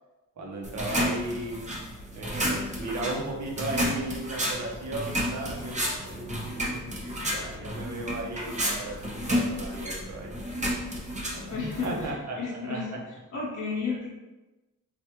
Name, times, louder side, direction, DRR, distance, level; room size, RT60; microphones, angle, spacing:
voice 1, 0.4-1.8 2.1-10.3 11.4-12.4 12.6-13.0 13.9-14.0, right 2 dB, 60° right, -2 dB, 0.9 m, -36 dB
sound 1, 0.6-12.1, equal, 20° right, 0.7 m, -31 dB
voice 2, 11.3-14.1, left 4 dB, 65° left, -6 dB, 0.8 m, -33 dB
3.4 x 2.4 x 2.9 m, 1.1 s
cardioid pair, 75°, 32 cm